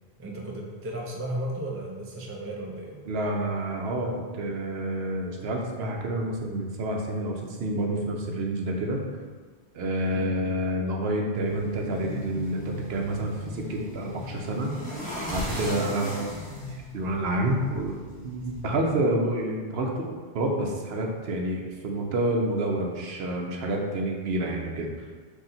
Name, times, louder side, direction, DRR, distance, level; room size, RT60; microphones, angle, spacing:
voice 1, 0.2-3.0 10.1-10.4 16.0-16.3, right 1 dB, 20° right, -2 dB, 0.3 m, -35 dB
voice 2, 3.1-9.0 9.7-14.7 15.3-16.1 16.9-25.1, right 1 dB, 70° right, 1 dB, 0.8 m, -28 dB
sound 1, 11.4-18.6, equal, 10° left, 0.8 m, -38 dB
4.2 x 2.7 x 3.8 m, 1.4 s
omnidirectional pair, 1.1 m